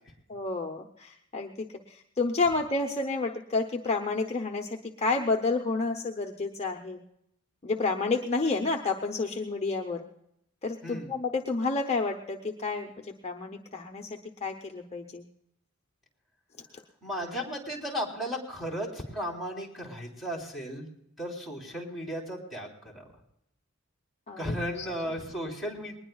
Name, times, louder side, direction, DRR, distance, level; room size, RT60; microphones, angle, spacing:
voice 1, 0.3-7.0 7.6-10.0 10.6-15.2 24.3-24.9, left 3 dB, 30° left, 2 dB, 0.8 m, -30 dB
voice 2, 17.0-20.9 21.2-22.7 22.9-23.0 24.4-25.9, equal, ahead, -4 dB, 3.4 m, -35 dB
21.0 x 19.5 x 2.3 m, 0.77 s
head